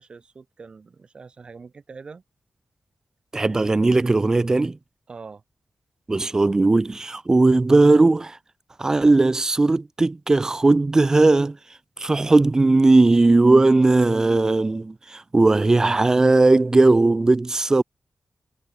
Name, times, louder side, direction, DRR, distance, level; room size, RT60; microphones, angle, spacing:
voice 1, 0.0-2.2 5.1-5.4, right 4 dB, 50° right, 7.8 m, -43 dB
voice 2, 3.3-4.8 6.1-8.4 8.8-11.6 12.0-17.8, right 2 dB, 30° right, 0.8 m, -18 dB
wide cardioid pair, 85°, 2 cm